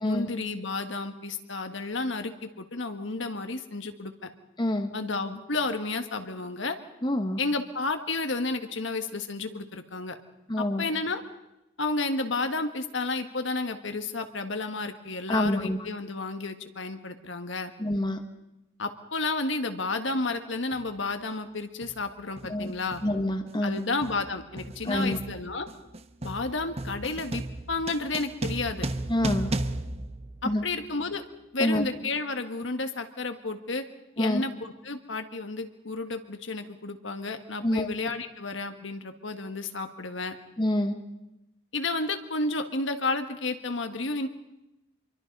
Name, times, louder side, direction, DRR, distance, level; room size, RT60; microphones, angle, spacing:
voice 1, 0.0-4.3 4.9-6.8 7.4-10.2 10.6-11.2 11.8-17.7 18.8-23.0 23.6-25.7 26.2-27.4 27.7-28.9 30.4-31.2 31.5-33.8 34.2-40.3 41.7-44.3, left 3 dB, 70° left, 7 dB, 1.7 m, -31 dB
voice 2, 4.6-4.9 7.0-7.4 10.5-10.8 15.3-15.8 17.8-18.2 22.5-22.7 23.0-23.8 24.8-25.2 29.1-29.5 30.4-30.6 31.6-31.9 34.2-34.4 37.6-37.9 40.6-41.0, left 1 dB, 20° left, 7 dB, 1.3 m, -26 dB
sound 1, 20.7-20.9 21.8-22.1 22.4-30.9, right 2 dB, 30° right, 0.9 m, -35 dB
26.0 x 23.5 x 5.4 m, 0.92 s
head